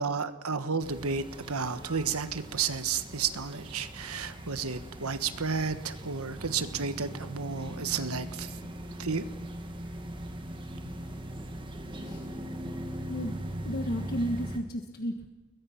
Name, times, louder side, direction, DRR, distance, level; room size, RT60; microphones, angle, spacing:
voice 1, 0.0-8.6 9.0-9.2, right 5 dB, 75° right, 10 dB, 1.4 m, -32 dB
sound 1, 0.8-14.6, right 1 dB, 20° right, 2.0 m, -40 dB
voice 2, 13.6-15.3, equal, 45° left, 5 dB, 1.5 m, -33 dB
30.0 x 22.0 x 5.9 m, 1.2 s
head